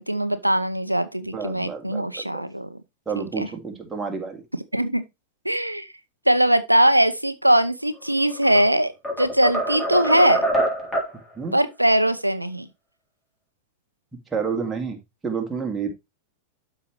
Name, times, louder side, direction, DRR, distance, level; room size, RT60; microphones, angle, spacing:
voice 1, 0.0-2.8 3.2-3.5 4.7-5.0 5.4-5.9 6.3-8.9 9.2-10.4 11.5-12.7, right 1 dB, 85° right, 0.6 m, -21 dB
voice 2, 1.3-2.2 3.1-4.4 11.3-11.6 14.3-15.9, right 5 dB, 10° right, 2.2 m, -29 dB
sound 1, 8.2-8.7 9.0-11.2, right 1 dB, 10° left, 3.5 m, -25 dB
12.5 x 4.8 x 3.1 m
figure-of-eight pair, 90°, 0 cm